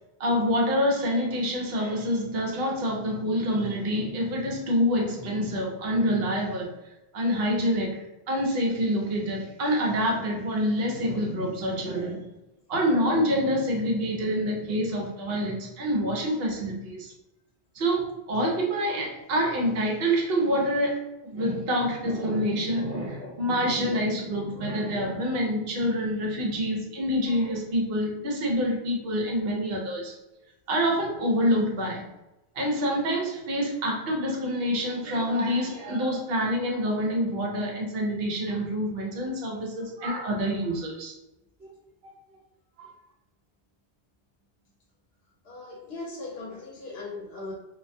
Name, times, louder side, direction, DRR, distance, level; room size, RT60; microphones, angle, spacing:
voice 1, 0.2-6.7 7.1-8.0 8.3-12.3 12.7-17.1 17.8-21.0 21.2-30.1 30.7-32.0 32.6-41.1 42.8-42.9, equal, 65° right, -1 dB, 0.8 m, -26 dB
voice 2, 45.4-47.5, left 3 dB, 65° left, -3 dB, 0.7 m, -38 dB
2.2 x 2.1 x 2.6 m, 0.98 s
omnidirectional pair, 1.1 m